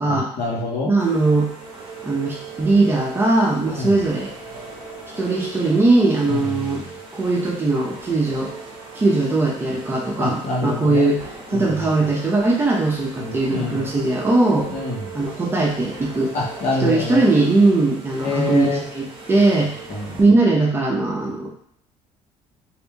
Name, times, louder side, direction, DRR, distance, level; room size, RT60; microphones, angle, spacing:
voice 1, 0.1-0.9 3.7-4.0 6.2-6.9 10.2-11.1 11.5-11.9 13.2-13.9 14.7-15.1 16.3-17.2 18.2-18.9 19.9-20.2, left 2 dB, 55° left, -3 dB, 1.2 m, -26 dB
voice 2, 0.8-1.5 2.0-4.3 5.2-6.8 7.1-8.5 8.9-11.2 11.5-14.7 15.1-16.4 16.8-19.7 20.2-21.5, right 2 dB, 15° right, -2 dB, 0.7 m, -19 dB
sound 1, 1.0-20.2, right 3 dB, 40° right, 0.9 m, -39 dB
3.4 x 2.6 x 3.4 m, 0.67 s
cardioid pair, 135°, 13 cm